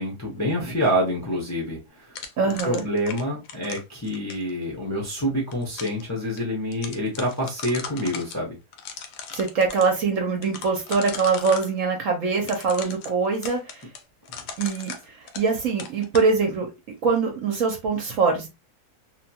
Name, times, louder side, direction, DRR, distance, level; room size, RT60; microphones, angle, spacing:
voice 1, 0.0-2.2 2.6-8.6 14.3-14.5, equal, 20° left, 0.4 m, -27 dB
sound 1, 2.2-4.5 5.3-6.0 6.4-6.5 6.7-8.4 8.7-9.9 10.4-11.7 12.4-15.5 15.8-16.3, left 6 dB, 85° left, 1.2 m, -37 dB
voice 2, 2.4-2.8 9.3-13.8 14.6-14.9 15.4-16.7 17.0-18.5, right 4 dB, 65° right, 0.9 m, -23 dB
2.8 x 2.2 x 2.7 m
omnidirectional pair, 1.7 m